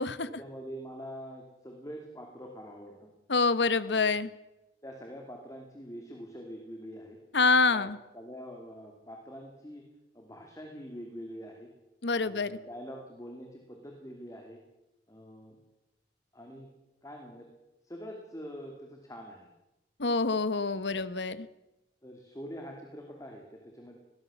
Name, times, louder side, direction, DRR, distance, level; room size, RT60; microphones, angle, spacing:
voice 1, 0.2-3.1 3.8-4.1 4.8-7.2 7.7-9.8 10.1-11.7 12.2-14.6 15.1-15.6 16.3-16.7 17.0-17.5 17.8-19.5 20.7-20.8 22.0-24.0, equal, 20° left, 2 dB, 2.8 m, -45 dB
voice 2, 3.3-4.3 7.3-8.0 12.0-12.6 20.0-21.5, left 4 dB, 75° left, 15 dB, 1.1 m, -26 dB
21.5 x 18.0 x 7.1 m, 0.98 s
head